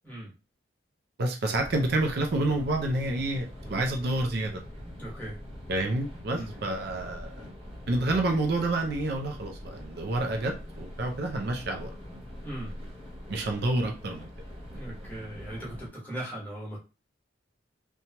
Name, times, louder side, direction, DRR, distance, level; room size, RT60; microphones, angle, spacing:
voice 1, 1.2-4.6 5.7-7.4 7.9-11.9 13.3-14.3, right 2 dB, 55° right, 3 dB, 0.4 m, -29 dB
sound 1, 1.5-15.9, equal, 30° right, 0.8 m, -43 dB
voice 2, 5.0-5.4 6.3-6.5 12.4-12.7 14.7-16.8, right 1 dB, 10° left, -6 dB, 1.1 m, -38 dB
2.9 x 2.2 x 2.8 m, 0.31 s
head